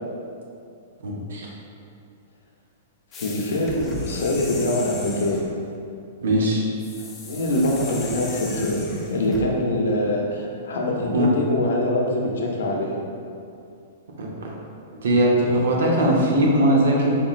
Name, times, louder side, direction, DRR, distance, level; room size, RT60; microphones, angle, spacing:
voice 1, 1.0-1.5 6.2-6.6 11.1-11.3 14.2-14.5 15.0-17.1, right 1 dB, 80° right, -2 dB, 0.7 m, -20 dB
voice 2, 3.1-5.5 7.2-12.9, left 1 dB, 85° left, -1 dB, 0.6 m, -24 dB
sound 1, 3.1-5.5 6.8-9.5, left 2 dB, 15° left, 0.3 m, -37 dB
3.7 x 2.9 x 2.4 m, 2.5 s
hypercardioid pair, 160°, 0 cm